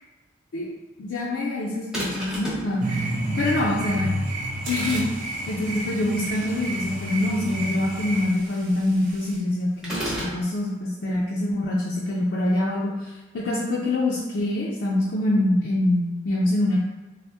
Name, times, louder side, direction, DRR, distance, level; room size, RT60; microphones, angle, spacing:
voice 1, 1.0-4.2 4.7-16.8, left 1 dB, 65° left, -5 dB, 0.4 m, -25 dB
sound 1, 1.9-2.7 9.8-10.4, equal, 5° right, 0.6 m, -30 dB
sound 2, 2.8-8.3, right 1 dB, 40° right, 0.4 m, -30 dB
sound 3, 4.3-9.4, right 2 dB, 85° right, 0.8 m, -42 dB
3.4 x 2.1 x 2.6 m, 1.2 s
head